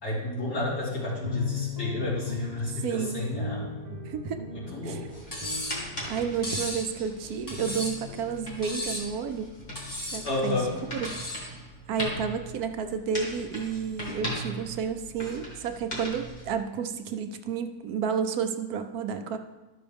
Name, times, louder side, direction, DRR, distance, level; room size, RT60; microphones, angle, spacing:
voice 1, 0.0-3.7 4.5-5.0 10.2-10.7, left 2 dB, 80° left, -8 dB, 4.0 m, -31 dB
sound 1, 1.0-9.0 9.6-10.7, left 5 dB, 30° right, 0.9 m, -39 dB
voice 2, 2.8-3.3 4.1-4.4 4.8-5.0 6.1-9.5 10.1-10.5 10.9-11.1 11.9-19.4, right 6 dB, 75° right, 7 dB, 1.1 m, -31 dB
sound 2, 5.0-16.5, equal, 30° left, 1.9 m, -40 dB
Cutlery silverware, 5.3-5.8 6.4-6.9 7.5-8.1 8.6-9.1 9.8-10.3 11.0-11.5, left 1 dB, 10° left, 1.7 m, -34 dB
12.0 x 6.2 x 3.4 m, 1.1 s
omnidirectional pair, 1.7 m